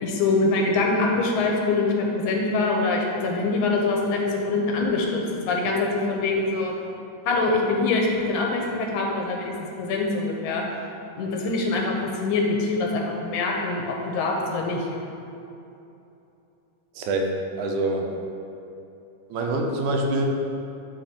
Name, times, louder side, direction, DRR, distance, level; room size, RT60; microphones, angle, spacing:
voice 1, 0.0-5.2 5.5-6.7 7.3-10.6 11.2-14.8, left 3 dB, 90° left, 0 dB, 2.3 m, -24 dB
voice 2, 17.0-18.1 19.3-20.3, right 2 dB, 90° right, 2 dB, 2.2 m, -25 dB
10.0 x 3.4 x 4.3 m, 2.8 s
omnidirectional pair, 3.4 m